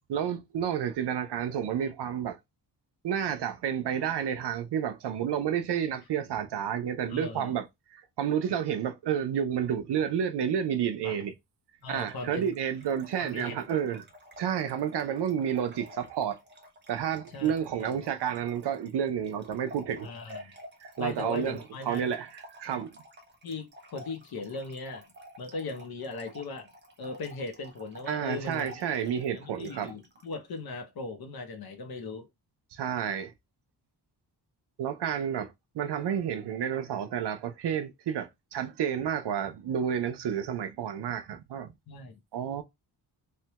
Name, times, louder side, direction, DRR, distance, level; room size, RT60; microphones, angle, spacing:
voice 1, 0.1-2.4 3.0-7.6 7.9-11.3 11.9-14.0 14.4-16.4 16.9-20.5 20.8-21.6 21.9-22.9 28.1-29.9 32.7-33.3 34.8-41.7 42.3-42.6, right 8 dB, 70° right, 0.6 m, -30 dB
voice 2, 7.1-7.5 11.0-11.2 11.8-12.5 13.2-13.6 17.3-17.5 17.9-18.0 20.0-20.5 21.0-22.1 22.7-22.8 23.4-25.0 25.4-26.7 27.0-28.7 29.1-32.3 41.9-42.2, left 3 dB, 60° left, 0.7 m, -38 dB
Trickle dribble / Fill (with liquid), 11.9-30.3, equal, 25° right, 0.7 m, -50 dB
3.2 x 2.2 x 2.8 m
wide cardioid pair, 160°, 42 cm